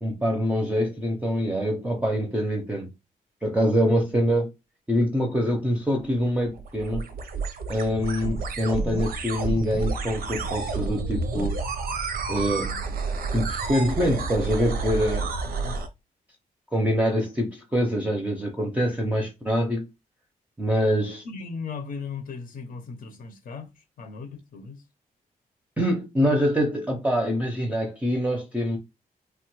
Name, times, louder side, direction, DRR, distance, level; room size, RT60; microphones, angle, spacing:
voice 1, 0.0-2.9 3.4-4.5 4.9-7.1 7.7-11.6 12.3-12.8 13.3-15.3 16.7-19.9 20.6-21.2 25.8-28.8, equal, 10° right, 0.5 m, -25 dB
voice 2, 3.9-4.2 15.6-15.8 21.2-24.8, left 5 dB, 70° left, 0.6 m, -37 dB
sound 1, 6.0-15.9, right 4 dB, 90° right, 0.6 m, -30 dB
3.2 x 2.1 x 3.0 m
wide cardioid pair, 160°, 15 cm